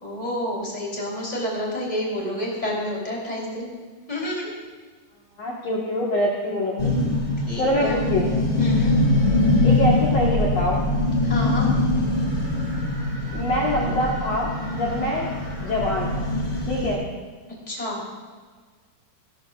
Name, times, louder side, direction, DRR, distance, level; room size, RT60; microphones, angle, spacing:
voice 1, 0.0-3.7 4.1-4.5 7.5-8.0 8.6-8.9 11.2-11.7 17.7-18.0, equal, 10° left, -4 dB, 2.6 m, -29 dB
voice 2, 5.4-6.9 7.6-8.3 9.6-10.8 13.3-15.3 15.6-16.3 16.7-17.0, left 1 dB, 85° left, -4 dB, 1.4 m, -25 dB
sound 1, 6.8-16.9, left 2 dB, 35° left, 0.9 m, -23 dB
20.0 x 12.5 x 2.4 m, 1.5 s
omnidirectional pair, 5.5 m